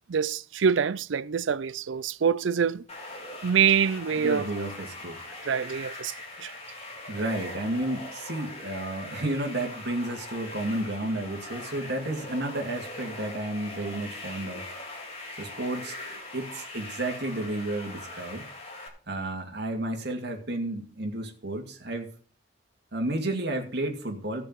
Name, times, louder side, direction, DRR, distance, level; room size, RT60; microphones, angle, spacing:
voice 1, 0.1-2.8 3.4-4.4 5.5-6.1 6.4-6.5, right 7 dB, 75° right, 0.5 m, -25 dB
sound 1, 2.9-18.9, left 2 dB, 35° left, 3.3 m, -41 dB
voice 2, 4.1-5.2 7.1-14.7 15.4-16.0 16.3-18.5 19.1-22.1 22.9-24.4, right 1 dB, 60° right, 2.4 m, -32 dB
16.5 x 6.9 x 4.6 m
head